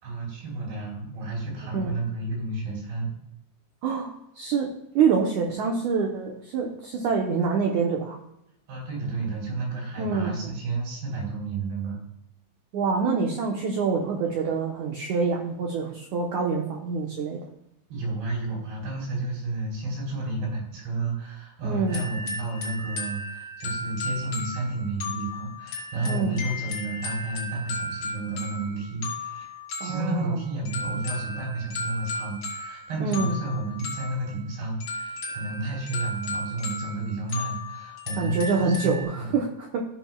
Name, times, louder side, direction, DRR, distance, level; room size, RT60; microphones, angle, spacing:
voice 1, 0.0-3.1 8.7-12.0 17.9-29.5 29.8-39.4, right 2 dB, 90° right, -2 dB, 6.0 m, -31 dB
voice 2, 3.8-4.7 5.0-8.2 10.0-10.3 12.7-17.4 21.6-22.0 26.1-26.4 29.8-30.4 33.0-33.4 38.2-39.9, right 5 dB, 65° right, 0 dB, 2.1 m, -26 dB
sound 1, 21.9-39.0, left 2 dB, 55° left, 3.8 m, -35 dB
15.0 x 7.4 x 2.4 m, 0.80 s
omnidirectional pair, 4.5 m